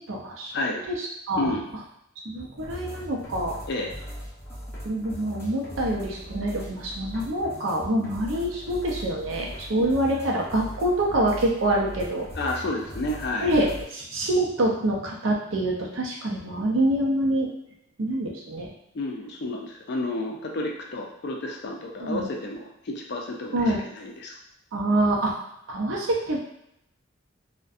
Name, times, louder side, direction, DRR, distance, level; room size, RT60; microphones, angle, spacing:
voice 1, 0.0-0.5 0.9-1.5 2.2-3.6 4.8-12.3 13.4-17.5 18.0-18.7 22.0-22.2 23.5-23.8 24.7-25.3 25.7-26.4, right 1 dB, 70° right, -1 dB, 0.5 m, -26 dB
sound 1, 2.5-13.8, equal, 10° left, 0.6 m, -39 dB
voice 2, 12.4-13.5 18.9-24.4, left 2 dB, 50° left, 1 dB, 0.4 m, -31 dB
2.6 x 2.1 x 2.4 m, 0.77 s
head